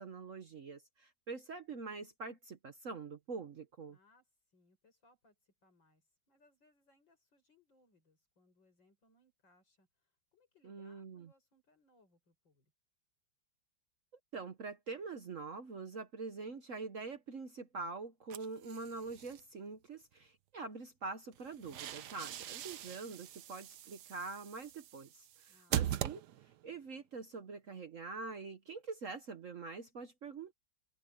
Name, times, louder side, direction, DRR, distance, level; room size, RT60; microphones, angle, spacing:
voice 1, 0.0-4.0 10.6-11.3 14.3-26.2 26.6-30.5, right 4 dB, 50° right, 1.3 m, -45 dB
voice 2, 3.9-12.7 25.5-26.1, left 2 dB, 80° left, 6.6 m, -71 dB
sound 1, 18.3-19.4 21.3-26.7, right 11 dB, 70° right, 1.2 m, -41 dB
omnidirectional pair, 2.0 m